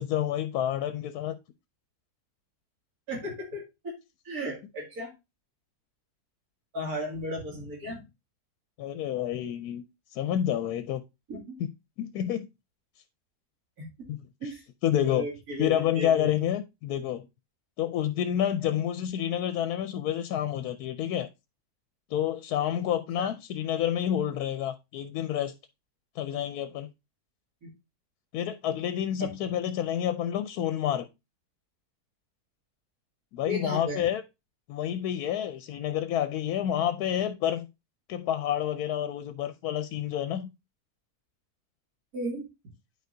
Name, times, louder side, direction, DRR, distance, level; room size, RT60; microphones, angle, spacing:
voice 1, 0.0-1.4 8.8-9.8 10.1-11.0 12.0-12.5 14.1-14.5 14.8-15.3 15.6-17.3 17.8-21.3 22.1-25.5 26.2-26.9 28.3-31.1 33.3-34.2 34.7-37.7 38.1-40.5, left 10 dB, 75° left, 1.0 m, -29 dB
voice 2, 3.1-3.9 4.2-5.1 6.7-8.0 11.3-11.6 13.8-13.9 14.4-14.6 15.1-16.4 18.6-18.7 23.2-23.3 27.6-27.7 29.2-29.5 33.5-34.1 42.1-42.5, equal, 65° right, 2.8 m, -35 dB
10.5 x 4.8 x 2.6 m
omnidirectional pair, 1.7 m